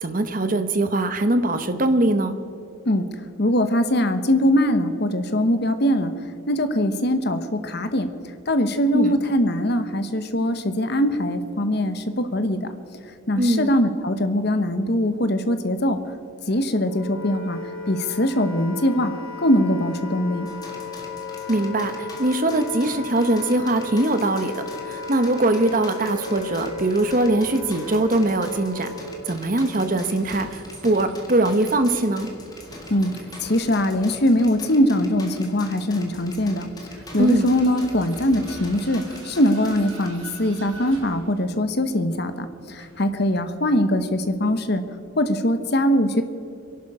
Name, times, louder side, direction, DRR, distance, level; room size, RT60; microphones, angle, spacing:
voice 1, 0.0-2.4 8.9-9.2 13.4-13.7 21.5-28.9 29.3-32.3 37.2-37.6, right 1 dB, 40° right, 9 dB, 1.0 m, -22 dB
voice 2, 3.4-6.1 6.5-8.1 8.5-12.7 13.3-16.0 16.5-17.6 17.9-19.1 19.4-20.5 32.9-36.7 37.1-44.8 45.2-46.2, left 1 dB, 50° left, 9 dB, 1.1 m, -22 dB
Wind instrument woodwind instrument, 16.7-29.4, left 3 dB, 75° left, 2.4 m, -35 dB
sound 1, 20.5-40.1, left 2 dB, 20° left, 1.9 m, -43 dB
Vehicle, 26.4-44.4, right 1 dB, 65° right, 3.8 m, -46 dB
25.0 x 11.5 x 4.9 m, 2.7 s
head